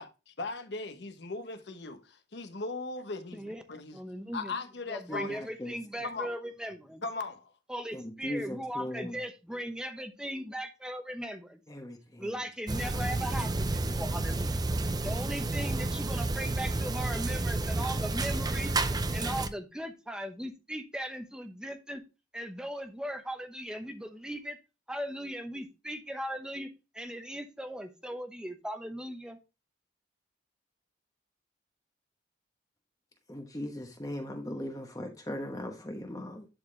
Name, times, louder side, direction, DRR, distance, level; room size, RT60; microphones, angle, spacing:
voice 1, 0.4-4.0 4.3-5.4 6.0-6.3 7.0-7.5, left 3 dB, 65° left, 1.0 m, -38 dB
voice 2, 3.3-3.6 3.9-4.5 4.9-7.0 7.7-11.6 12.2-14.6 15.0-18.7 19.1-22.0 22.3-24.6 24.9-29.4, equal, 5° right, 0.9 m, -38 dB
voice 3, 5.1-5.7 7.9-9.2 11.7-12.4 12.9-13.0 33.3-36.5, left 1 dB, 20° left, 1.0 m, -39 dB
sound 1, 12.7-19.5, right 2 dB, 20° right, 0.5 m, -30 dB
11.0 x 4.4 x 3.2 m
head